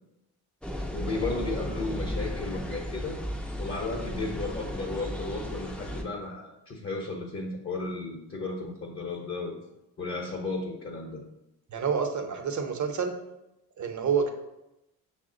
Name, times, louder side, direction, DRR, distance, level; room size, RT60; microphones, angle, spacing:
sound 1, 0.6-6.0, equal, ahead, 0.5 m, -35 dB
voice 1, 0.9-3.2 3.6-9.6 10.0-11.2, left 3 dB, 35° left, -1 dB, 0.8 m, -34 dB
voice 2, 11.7-13.1 13.8-14.3, right 6 dB, 45° right, 4 dB, 0.8 m, -28 dB
5.7 x 2.1 x 3.7 m, 0.91 s
cardioid pair, 70°, 40 cm